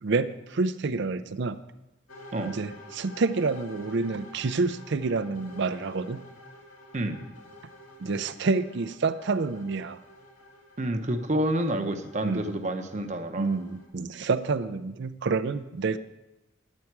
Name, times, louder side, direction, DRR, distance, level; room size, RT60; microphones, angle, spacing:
voice 1, 0.0-1.6 2.4-6.2 8.0-10.0 12.2-12.6 13.4-16.0, right 4 dB, 60° right, 12 dB, 0.5 m, -28 dB
sound 1, 2.1-13.9, left 1 dB, 80° left, 2.6 m, -49 dB
voice 2, 10.8-13.5, right 1 dB, 35° right, 6 dB, 0.8 m, -28 dB
11.0 x 8.5 x 4.6 m, 0.97 s
head